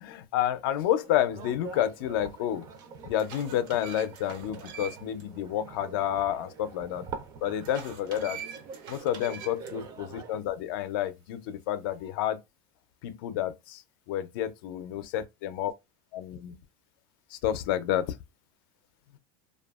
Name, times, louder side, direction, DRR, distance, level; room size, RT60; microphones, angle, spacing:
voice 1, 0.0-2.7 3.0-7.1 7.4-8.4 8.9-12.4 13.0-13.8 14.1-15.7 16.1-16.6 17.3-18.1, left 11 dB, 75° left, 0.5 m, -30 dB
sound 1, 1.0-10.4, right 5 dB, 30° right, 0.5 m, -45 dB
sound 2, 2.2-2.3 2.9-5.2 5.6-5.7 7.6-9.7, right 7 dB, 75° right, 0.8 m, -44 dB
2.7 x 2.3 x 2.3 m
cardioid pair, 160°, 12 cm